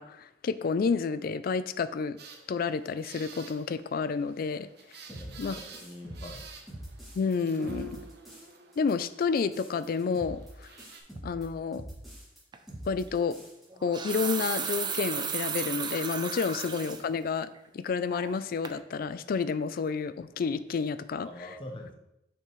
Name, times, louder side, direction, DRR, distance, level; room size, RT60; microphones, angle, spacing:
voice 1, 0.0-2.2 2.5-4.7 5.4-5.5 7.1-8.0 8.8-10.7 11.2-11.8 12.9-13.4 13.8-17.5 17.7-21.3, left 5 dB, 50° left, 14 dB, 0.3 m, -30 dB
sound 1, 2.2-11.0, right 2 dB, 60° right, 0.8 m, -49 dB
voice 2, 5.1-6.5 21.2-21.9, left 1 dB, 30° left, 3 dB, 0.8 m, -44 dB
sound 2, 5.1-7.3 7.6-8.5 8.7-12.4 12.7-13.6 13.9-14.0 14.2-14.9, right 1 dB, ahead, 2.4 m, -45 dB
sound 3, 12.5-12.7 13.7-17.0 17.5-17.6 18.1-18.4 18.7-18.8, right 7 dB, 25° right, 0.4 m, -34 dB
6.7 x 5.8 x 3.1 m, 0.84 s
head